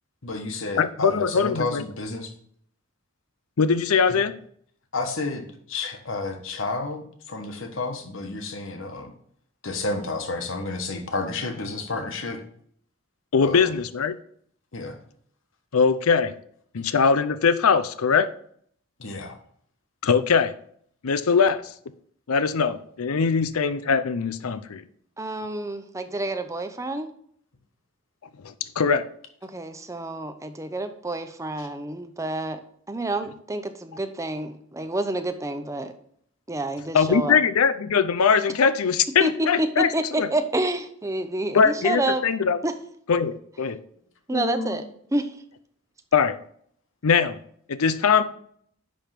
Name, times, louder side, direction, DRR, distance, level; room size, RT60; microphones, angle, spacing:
voice 1, 0.2-2.3 4.1-4.2 4.9-9.1 9.6-12.4 13.4-13.8 14.7-15.0 19.0-19.4 31.6-31.7 44.3-44.8, left 3 dB, 65° left, 5 dB, 1.3 m, -31 dB
voice 2, 0.8-1.8 3.6-4.4 13.3-14.2 15.7-16.3 16.7-18.3 20.0-20.5 21.0-21.7 22.3-24.8 28.4-29.1 36.9-39.9 40.2-40.3 41.5-42.6 43.1-43.8 46.1-46.4 47.0-47.4 47.7-48.2, left 6 dB, 90° left, 13 dB, 0.6 m, -21 dB
voice 3, 25.2-27.1 29.5-32.6 32.9-35.9 36.5-37.4 39.2-42.2 42.6-42.7 44.3-44.8 45.1-45.3, right 2 dB, 15° right, 8 dB, 0.6 m, -28 dB
10.5 x 3.5 x 5.8 m, 0.63 s
head